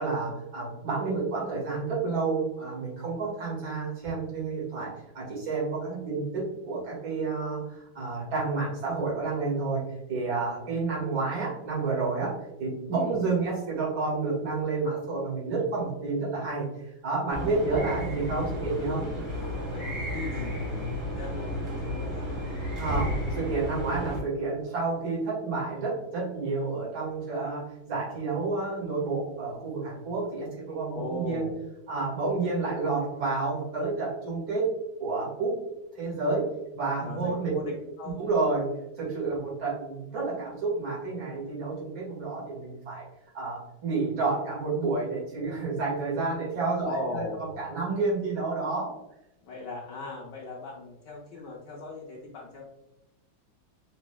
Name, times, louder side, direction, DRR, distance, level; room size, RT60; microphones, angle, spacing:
voice 1, 0.0-9.8 10.1-12.3 12.6-19.1 22.8-31.5 31.9-34.7 35.0-35.6 35.9-36.5 36.7-37.5 38.2-38.7 39.0-43.1 43.3-48.9, right 3 dB, 75° right, -5 dB, 2.5 m, -30 dB
sound 1, 17.3-24.2, left 1 dB, 35° right, 1.8 m, -32 dB
voice 2, 17.7-18.1 19.7-22.3 30.9-31.6 37.0-38.2 39.3-39.5 46.8-47.6 49.4-52.6, left 3 dB, 65° left, -4 dB, 1.2 m, -38 dB
5.0 x 3.2 x 2.2 m, 0.91 s
omnidirectional pair, 2.2 m